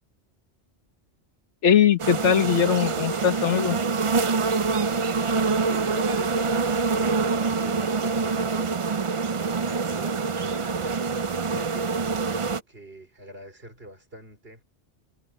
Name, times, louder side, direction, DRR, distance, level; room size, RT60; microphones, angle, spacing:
voice 1, 1.6-3.8, left 8 dB, 80° left, 1.4 m, -20 dB
sound 1, 2.0-12.6, right 4 dB, 40° right, 0.5 m, -25 dB
voice 2, 5.7-8.7 9.3-14.6, right 1 dB, 55° right, 5.2 m, -43 dB
omnidirectional pair, 1.2 m